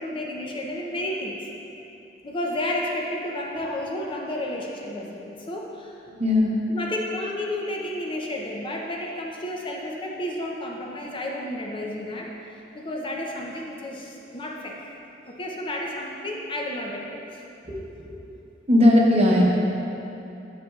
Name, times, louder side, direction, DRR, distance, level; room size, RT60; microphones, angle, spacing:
voice 1, 0.0-1.4 2.2-5.9 6.7-12.3 12.7-14.8 15.2-17.4, left 1 dB, 30° left, -1 dB, 0.6 m, -31 dB
voice 2, 6.2-6.5 18.7-19.5, left 1 dB, 35° right, -2 dB, 0.9 m, -17 dB
9.9 x 6.6 x 2.4 m, 2.8 s
head